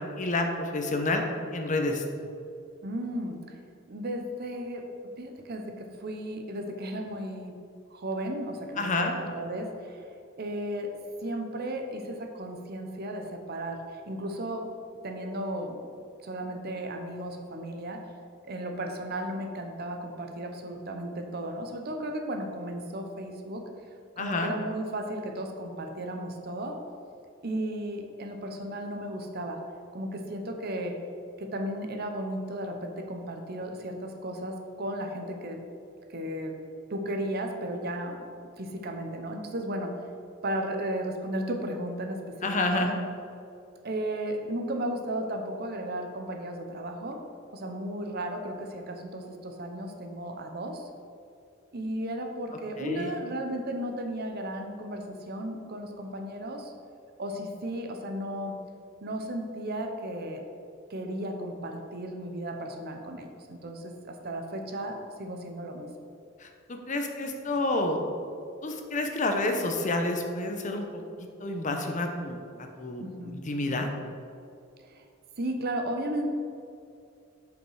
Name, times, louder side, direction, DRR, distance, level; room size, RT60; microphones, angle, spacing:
voice 1, 0.2-1.2 1.5-2.0 8.8-9.1 24.2-24.5 42.4-43.0 52.8-53.1 66.4-68.0 68.6-71.0 71.4-73.9, left 2 dB, 40° left, 4 dB, 0.8 m, -29 dB
voice 2, 2.8-3.6 3.9-7.6 7.9-10.0 10.4-10.9 11.2-14.7 15.0-15.8 16.2-18.0 18.5-23.6 24.2-26.8 27.4-29.6 29.9-31.0 31.4-35.6 36.1-36.6 36.9-38.2 38.6-39.9 40.4-42.4 42.7-42.9 43.8-47.2 47.5-50.9 51.7-56.7 57.2-58.6 59.0-60.4 60.9-65.9 73.0-73.4 74.8-75.0 75.4-76.3, right 1 dB, 50° right, 4 dB, 0.8 m, -34 dB
7.9 x 5.2 x 4.8 m, 2.5 s
head